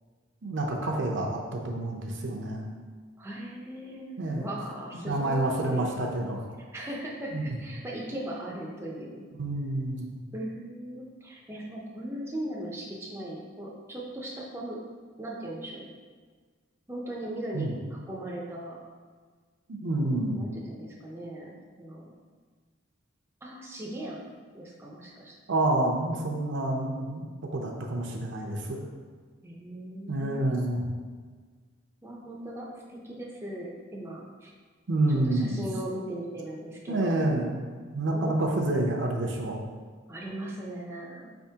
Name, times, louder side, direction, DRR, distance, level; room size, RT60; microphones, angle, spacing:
voice 1, 0.4-2.6 4.2-4.5 4.9-6.4 7.3-7.6 9.4-10.1 17.5-17.7 19.7-20.4 25.5-27.2 27.5-28.8 30.1-30.8 34.9-35.6 36.9-37.5 37.8-39.6, right 2 dB, 65° right, 1 dB, 0.6 m, -28 dB
voice 2, 3.2-5.9 6.7-9.3 10.3-14.8 15.2-15.8 16.9-18.8 20.0-22.1 23.4-24.3 24.5-25.3 29.4-30.6 32.0-34.5 35.1-37.3 38.1-38.3 40.1-41.3, right 1 dB, 10° right, -3 dB, 0.5 m, -38 dB
4.9 x 3.5 x 2.8 m, 1.5 s
head